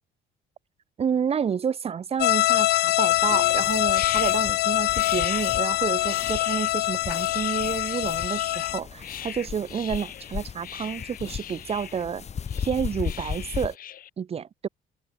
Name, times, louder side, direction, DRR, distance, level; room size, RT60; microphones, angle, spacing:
voice 1, 1.0-12.2 12.6-13.8 14.2-14.7, right 7 dB, 35° right, 1.1 m, -30 dB
sound 1, 2.2-8.8, left 17 dB, 75° left, 0.8 m, -24 dB
sound 2, 3.1-14.1, left 11 dB, 60° left, 4.7 m, -40 dB
sound 3, 3.1-13.7, left 7 dB, 40° left, 4.7 m, -37 dB
cardioid pair, 110°, 17 cm